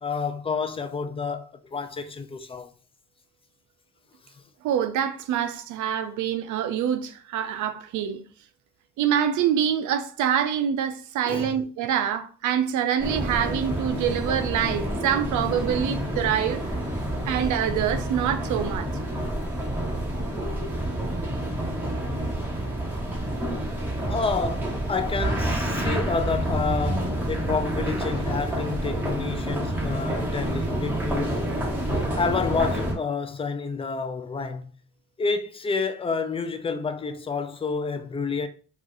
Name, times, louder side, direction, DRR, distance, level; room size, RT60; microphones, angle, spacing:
voice 1, 0.0-2.7 11.3-11.6 24.1-31.4 32.2-34.7 35.2-38.5, left 5 dB, 20° left, 0.4 m, -29 dB
voice 2, 4.6-8.2 9.0-16.6 17.3-18.9, right 9 dB, 75° right, 0.5 m, -25 dB
sound 1, 13.0-32.9, right 1 dB, 5° right, 1.2 m, -28 dB
2.5 x 2.4 x 3.6 m
cardioid pair, 90°, 30 cm